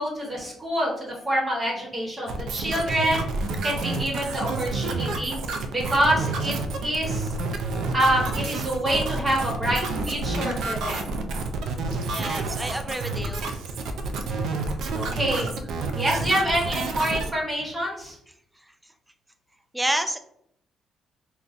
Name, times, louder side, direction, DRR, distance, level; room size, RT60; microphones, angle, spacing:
voice 1, 0.0-3.2 3.6-5.4 5.7-6.5 6.8-7.3 7.9-11.0 14.9-15.5 15.9-18.2, right 1 dB, 25° right, -4 dB, 1.0 m, -26 dB
sound 1, 2.3-17.3, right 3 dB, 80° right, 0.4 m, -29 dB
voice 2, 12.1-13.5 19.7-20.2, right 1 dB, 5° right, 8 dB, 0.3 m, -28 dB
3.7 x 2.2 x 2.5 m, 0.71 s
cardioid pair, 90°, 0 cm